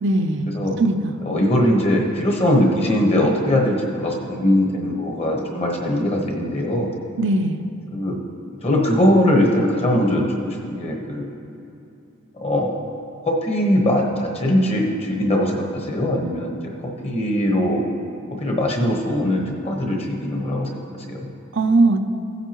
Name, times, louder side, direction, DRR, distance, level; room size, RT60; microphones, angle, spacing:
voice 1, 0.0-0.5 0.8-1.1 7.2-7.6 21.5-22.0, right 2 dB, 55° right, 7 dB, 0.5 m, -19 dB
voice 2, 1.2-7.0 7.9-8.2 8.5-11.3 12.3-12.8 13.2-16.6 17.0-17.8 18.3-21.3, left 1 dB, 30° left, 0 dB, 1.2 m, -21 dB
16.0 x 8.1 x 3.0 m, 2.7 s
head